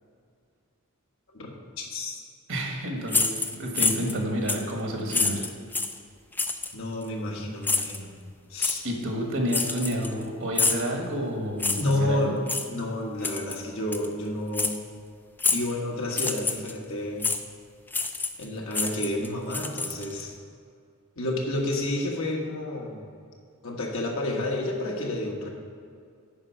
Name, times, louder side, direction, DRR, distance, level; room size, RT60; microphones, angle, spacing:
voice 1, 1.3-2.2 6.7-8.1 8.5-8.8 11.8-12.4 12.7-14.8 15.5-17.2 18.4-20.3 21.2-23.0 23.6-25.5, left 1 dB, 65° left, -1 dB, 1.4 m, -30 dB
voice 2, 2.5-5.4 8.8-12.2, equal, 65° right, 1 dB, 1.5 m, -29 dB
sound 1, 3.1-4.2 4.5-4.7 5.1-6.0 6.4-6.7 7.6-8.0 8.6-8.8 9.5-10.2 10.6-10.9 11.6-12.0 12.5-12.7 13.2-13.6 13.9-14.1 14.5-14.8 15.4-15.7 16.1-16.7 17.2-17.4 17.9-18.4 18.7-20.2, left 4 dB, 10° left, 0.4 m, -27 dB
8.8 x 5.3 x 5.8 m, 2.3 s
head